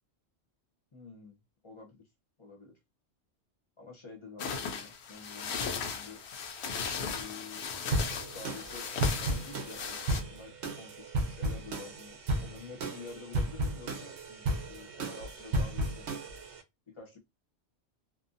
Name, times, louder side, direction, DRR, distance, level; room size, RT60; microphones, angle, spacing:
voice 1, 0.9-1.4 1.6-2.1 2.4-2.8 3.8-6.2 7.1-7.8 8.3-16.2 16.9-17.2, left 4 dB, 30° left, 0.7 m, -49 dB
sound 1, 4.4-10.2, left 6 dB, 75° left, 0.8 m, -37 dB
sound 2, 7.9-16.6, right 1 dB, 85° right, 0.9 m, -34 dB
2.6 x 2.2 x 2.5 m
omnidirectional pair, 1.1 m